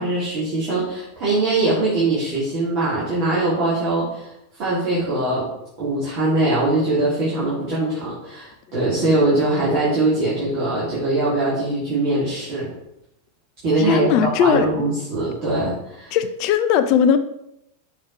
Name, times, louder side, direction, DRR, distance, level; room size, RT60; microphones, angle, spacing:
voice 1, 0.0-4.3 4.6-5.5 5.8-12.7 13.6-16.2, right 2 dB, 40° right, -9 dB, 2.7 m, -22 dB
voice 2, 13.9-14.7 16.1-17.2, left 8 dB, 40° left, 11 dB, 0.4 m, -18 dB
6.2 x 4.6 x 4.6 m, 0.83 s
figure-of-eight pair, 90°, 0 cm